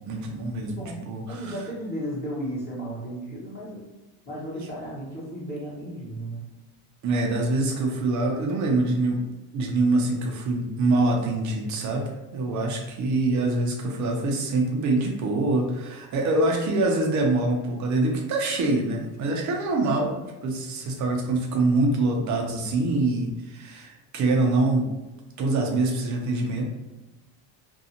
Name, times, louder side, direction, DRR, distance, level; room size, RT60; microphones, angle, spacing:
voice 1, 0.1-1.5 7.0-9.2 9.5-20.1 20.4-24.8 25.4-26.7, right 2 dB, 40° right, 1 dB, 0.6 m, -25 dB
voice 2, 0.7-3.8 4.2-6.5, right 1 dB, 20° left, -7 dB, 1.1 m, -34 dB
2.6 x 2.3 x 2.8 m, 1.1 s
cardioid pair, 130°, 45 cm